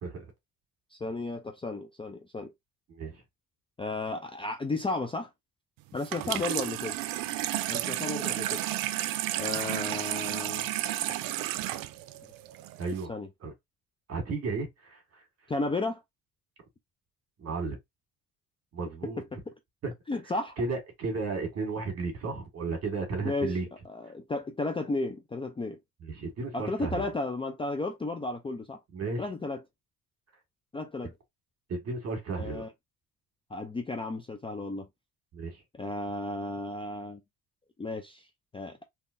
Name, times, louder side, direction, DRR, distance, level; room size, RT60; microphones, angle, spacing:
voice 1, 0.9-2.5 3.8-5.3 5.9-7.0 7.7-8.6 9.4-10.7 13.1-13.3 15.5-16.0 19.0-19.5 20.1-20.6 23.2-23.6 23.9-25.8 26.5-28.8 29.2-29.6 30.7-31.1 32.4-32.7 33.5-34.9 35.7-37.2 37.8-38.3 38.5-38.8, left 2 dB, 15° left, 0.4 m, -33 dB
voice 2, 2.9-3.2 12.8-13.1 13.4-13.5 14.1-15.2 17.4-17.8 18.7-19.2 19.8-19.9 20.6-23.7 26.0-27.1 28.9-29.2 31.7-32.6 35.3-35.6, right 3 dB, 50° right, 1.7 m, -33 dB
Water tap faucet / Sink (filling or washing), 6.0-13.0, right 14 dB, 85° right, 0.5 m, -32 dB
3.7 x 2.9 x 2.5 m
cardioid pair, 130°, 33 cm